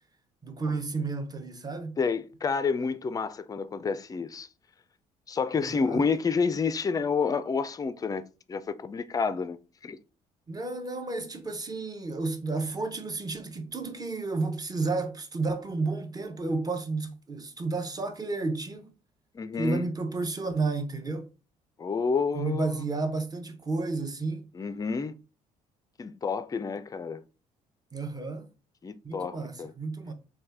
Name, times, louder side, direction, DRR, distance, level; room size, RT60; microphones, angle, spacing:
voice 1, 0.4-2.0 5.6-6.0 10.5-18.9 19.6-21.3 22.3-24.5 27.9-28.5 29.0-30.1, right 3 dB, 20° right, 0.7 m, -32 dB
voice 2, 2.0-4.5 5.3-8.2 8.5-9.6 9.8-10.0 19.3-19.9 21.8-22.8 24.5-25.1 26.0-27.2 28.8-29.7, left 5 dB, 20° left, 0.4 m, -29 dB
3.2 x 2.2 x 3.4 m
hypercardioid pair, 50°, 18 cm